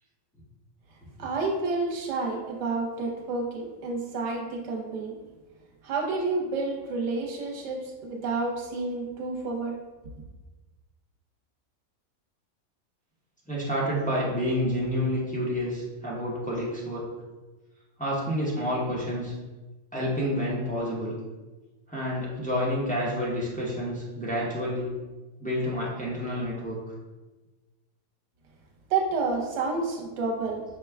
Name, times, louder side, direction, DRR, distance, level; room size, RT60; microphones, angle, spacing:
voice 1, 1.2-5.2 5.8-9.8 28.9-30.6, right 3 dB, 60° right, -1 dB, 1.0 m, -29 dB
voice 2, 13.5-17.1 18.0-19.3 19.9-21.1 21.9-24.9 25.4-26.8, equal, 10° left, -6 dB, 0.5 m, -29 dB
5.3 x 2.2 x 3.4 m, 1.2 s
omnidirectional pair, 1.4 m